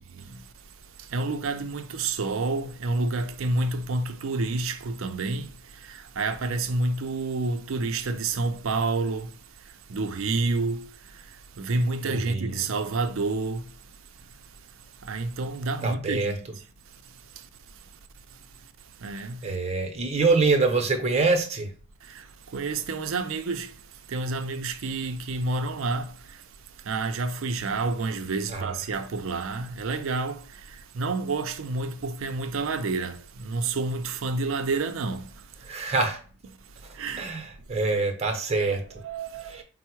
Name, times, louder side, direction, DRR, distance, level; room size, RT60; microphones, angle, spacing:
voice 1, 1.1-5.5 5.9-9.3 9.9-10.9 11.6-13.7 15.1-16.3 19.0-19.4 22.1-22.2 22.5-23.7 24.1-26.1 26.9-30.4 30.9-35.3 37.0-37.3 38.5-39.6, right 3 dB, 65° right, 0.5 m, -29 dB
voice 2, 12.0-12.6 15.8-16.3 19.4-21.7 28.5-28.8 35.6-36.2 37.2-38.8 39.5-39.6, right 3 dB, 30° right, 0.7 m, -25 dB
4.4 x 2.0 x 4.5 m
head